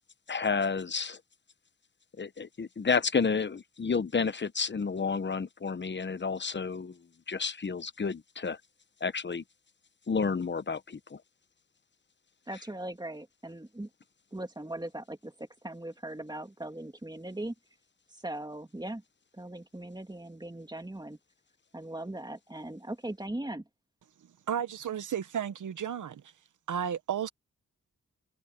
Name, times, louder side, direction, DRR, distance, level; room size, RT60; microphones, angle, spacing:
voice 1, 0.3-1.2 2.2-7.0 7.3-8.6 9.0-9.4 10.1-11.2, left 5 dB, 40° left, 0.9 m, -30 dB
voice 2, 12.5-13.9 14.3-17.5 18.2-19.0 19.3-21.2 21.7-23.6, right 1 dB, 15° right, 2.2 m, -39 dB
voice 3, 24.5-26.2 26.7-27.3, right 8 dB, 90° right, 1.0 m, -33 dB
wide cardioid pair, 80°, 30 cm